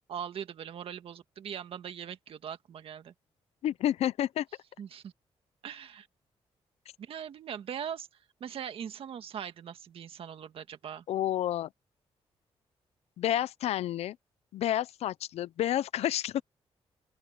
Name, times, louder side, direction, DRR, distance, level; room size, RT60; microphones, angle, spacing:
voice 1, 0.1-3.1 4.8-5.1 5.6-6.1 7.0-8.1 8.4-11.0, right 8 dB, 65° right, 1.8 m, -40 dB
voice 2, 3.6-4.5 11.1-11.7 13.2-14.2 14.5-16.4, left 12 dB, 85° left, 0.6 m, -30 dB
open air
wide cardioid pair, 140°, 10 cm